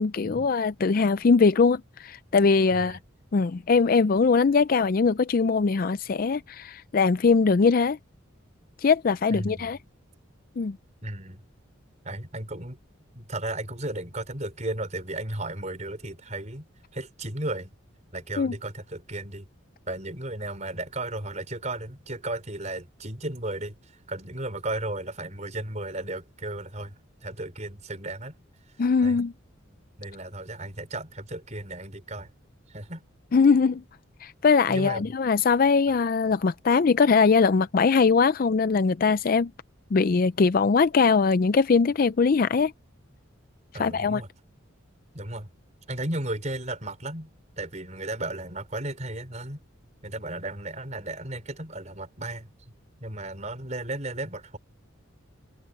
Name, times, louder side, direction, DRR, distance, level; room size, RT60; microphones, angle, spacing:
voice 1, 0.0-3.0 3.3-8.0 8.8-9.8 10.6-10.8 18.4-18.5 28.8-29.3 33.3-33.8 34.2-39.5 39.9-42.7 43.8-44.2, left 5 dB, 45° left, 0.4 m, -21 dB
voice 2, 9.3-9.7 11.0-11.4 12.1-12.8 13.1-16.7 16.9-17.7 18.1-19.5 19.9-23.8 24.1-26.9 27.2-28.3 29.0-29.2 30.0-32.3 32.7-33.0 34.7-35.1 43.7-44.3 45.1-45.5 45.9-47.3 47.6-49.6 50.0-52.5 53.0-54.6, right 2 dB, 35° right, 5.2 m, -34 dB
open air
head